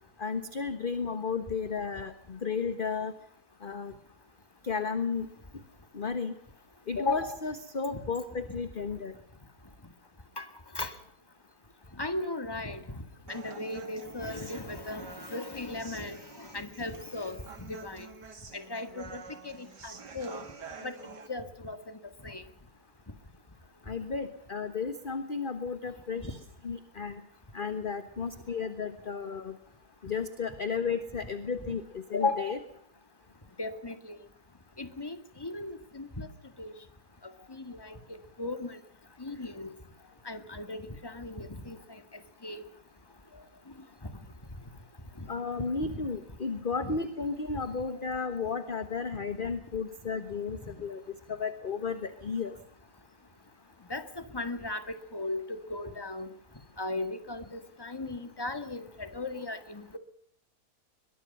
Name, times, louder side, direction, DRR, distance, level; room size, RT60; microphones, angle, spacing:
voice 1, 0.2-3.1 3.6-3.9 4.6-5.3 5.9-6.3 6.9-9.1 23.9-26.4 26.6-27.2 27.5-29.5 30.0-32.6 45.3-51.0 51.3-52.5, left 5 dB, 35° left, 10 dB, 1.4 m, -33 dB
voice 2, 12.0-12.8 13.3-17.4 17.7-18.1 18.5-20.4 20.8-20.9 21.3-22.0 22.2-22.4 26.2-26.3 33.6-34.2 34.8-36.3 36.6-36.7 37.6-37.9 38.4-38.8 39.2-39.7 40.3-41.8 42.4-42.6 45.9-46.0 46.8-47.0 53.9-54.0 54.3-54.8 55.1-56.3 56.8-60.0, left 2 dB, 15° left, 9 dB, 1.9 m, -37 dB
Human voice, 13.3-21.3, right 4 dB, 90° right, 2.9 m, -48 dB
22.5 x 21.5 x 5.5 m, 0.68 s
omnidirectional pair, 1.8 m